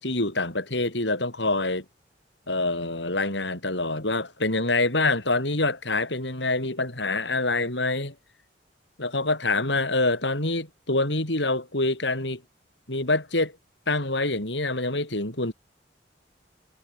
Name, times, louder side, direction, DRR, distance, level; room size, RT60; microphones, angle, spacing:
voice 1, 0.0-1.8 2.5-8.1 9.0-12.4 12.9-13.5 13.9-15.5, left 2 dB, 70° left, 6.8 m, -26 dB
head